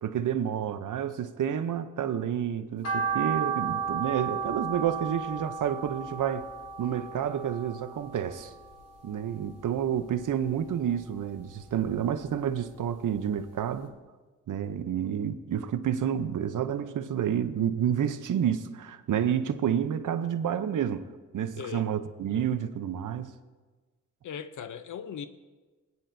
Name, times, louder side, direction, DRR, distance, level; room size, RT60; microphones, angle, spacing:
voice 1, 0.0-6.5 6.8-8.5 9.0-14.0 14.5-21.1 21.3-23.3, right 9 dB, 80° right, 0.7 m, -29 dB
sound 1, 2.8-9.1 9.5-10.7 11.0-12.4 12.8-12.9 13.4-13.5 13.7-13.8, right 6 dB, 55° left, 1.6 m, -34 dB
voice 2, 24.2-25.3, left 8 dB, 75° left, 0.6 m, -38 dB
19.5 x 9.6 x 2.7 m
wide cardioid pair, 120°, 31 cm